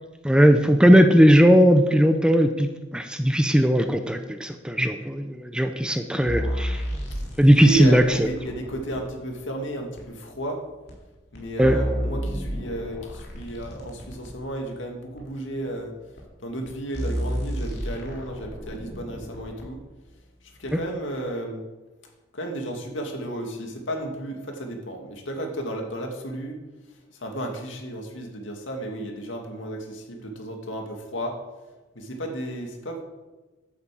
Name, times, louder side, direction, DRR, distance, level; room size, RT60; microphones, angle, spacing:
voice 1, 0.2-6.8 7.4-8.3 11.6-11.8, equal, 5° right, 7 dB, 0.6 m, -18 dB
sound 1, 6.3-9.0 10.0-10.1 10.9-11.0 11.3-14.3 15.2-15.3 16.2-16.3 16.6-16.7 16.9-19.7 20.7-20.8, equal, 50° left, 3.6 m, -31 dB
voice 2, 7.6-10.6 11.3-15.9 16.4-19.8 20.6-21.6 22.3-26.6 27.2-31.3 31.9-33.0, right 1 dB, 70° left, 2 dB, 2.4 m, -33 dB
11.0 x 8.5 x 7.7 m, 1.2 s
head